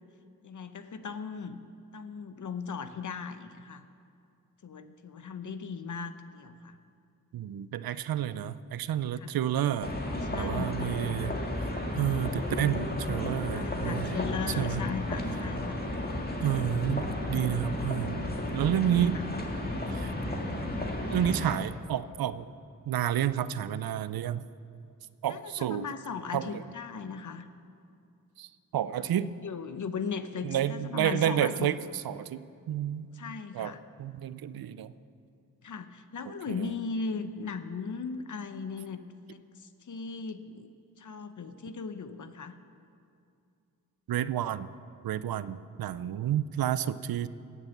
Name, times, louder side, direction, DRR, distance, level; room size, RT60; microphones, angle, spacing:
voice 1, 0.4-1.6 1.9-3.8 4.6-6.8 9.2-9.3 10.0-10.8 13.5-15.8 18.8-19.0 25.3-27.5 29.0-31.7 33.1-33.8 35.6-39.0 39.3-40.7 41.0-42.5, left 5 dB, 55° left, 10 dB, 0.8 m, -38 dB
voice 2, 7.3-9.9 10.4-11.3 12.0-14.2 14.5-14.8 16.4-19.2 19.9-20.1 21.1-22.5 22.9-24.5 25.2-25.9 26.3-26.6 28.4-29.3 30.4-33.1 33.5-33.7 34.0-34.9 36.5-36.7 44.1-44.7 45.0-47.3, right 10 dB, 80° right, 15 dB, 0.5 m, -30 dB
sound 1, 9.8-21.6, left 1 dB, 25° left, 2.0 m, -33 dB
17.5 x 6.9 x 7.2 m, 2.4 s
cardioid pair, 55°, 36 cm